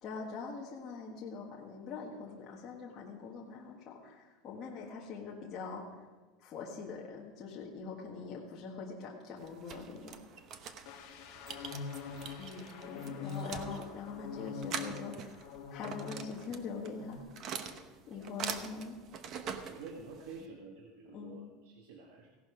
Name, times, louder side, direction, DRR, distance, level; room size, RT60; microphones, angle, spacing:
voice 1, 0.0-6.0 6.4-10.2 12.4-17.2 18.1-19.0 21.1-21.4, left 5 dB, 30° left, -3 dB, 1.6 m, -43 dB
sound 1, 9.4-20.4, right 7 dB, 35° right, 1.0 m, -44 dB
sound 2, 10.9-16.6 16.9-17.2, left 5 dB, 50° left, 1.6 m, -44 dB
voice 2, 12.0-12.5 19.7-22.4, right 4 dB, 85° right, 1 dB, 1.7 m, -49 dB
16.5 x 11.5 x 5.0 m, 1.3 s
supercardioid pair, 165°, 0 cm